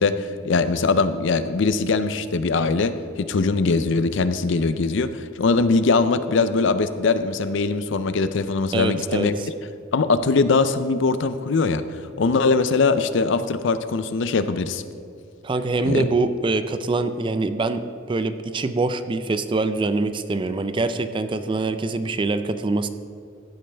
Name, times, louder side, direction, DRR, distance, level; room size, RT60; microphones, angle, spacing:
voice 1, 0.0-9.4 9.9-11.8 12.2-14.8 15.8-16.1, left 4 dB, 65° left, 12 dB, 0.5 m, -21 dB
voice 2, 8.7-9.5 15.4-22.9, right 3 dB, 25° right, 10 dB, 0.4 m, -24 dB
14.5 x 8.7 x 3.4 m, 2.5 s
head